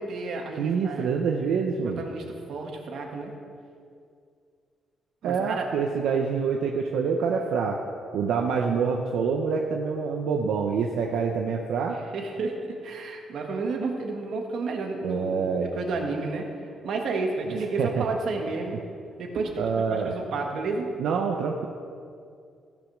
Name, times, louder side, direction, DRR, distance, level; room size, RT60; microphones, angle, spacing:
voice 1, 0.0-1.1 1.9-3.4 5.2-5.6 12.1-15.4 15.7-16.5 16.8-18.8 19.2-20.9, right 3 dB, 65° right, 2 dB, 1.5 m, -31 dB
voice 2, 0.6-2.0 5.2-7.8 8.1-12.0 15.0-15.7 17.5-18.0 19.6-20.1 21.0-21.7, right 5 dB, 85° right, 2 dB, 0.7 m, -26 dB
15.0 x 5.1 x 6.4 m, 2.4 s
cardioid pair, 150°, 0 cm